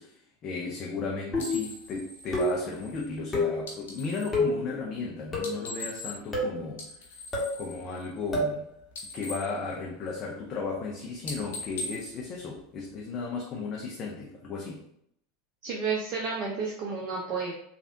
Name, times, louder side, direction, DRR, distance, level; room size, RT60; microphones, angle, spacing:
voice 1, 0.0-7.2 7.6-8.7 9.1-14.8, left 4 dB, 40° left, -2 dB, 0.6 m, -35 dB
sound 1, 1.3-1.7 2.3-2.7 3.3-3.6 4.3-4.6 5.3-5.7 6.3-6.6 7.3-7.6 8.3-8.6, left 1 dB, 20° left, 1.2 m, -28 dB
sound 2, 1.4-4.4 5.3-6.4 6.7-8.6 8.8-10.4 10.7-11.0 11.2-13.1, left 2 dB, 70° left, 0.8 m, -41 dB
voice 2, 15.6-17.5, right 5 dB, 45° right, -3 dB, 0.6 m, -31 dB
3.3 x 2.5 x 2.6 m, 0.71 s
figure-of-eight pair, 85°, 0 cm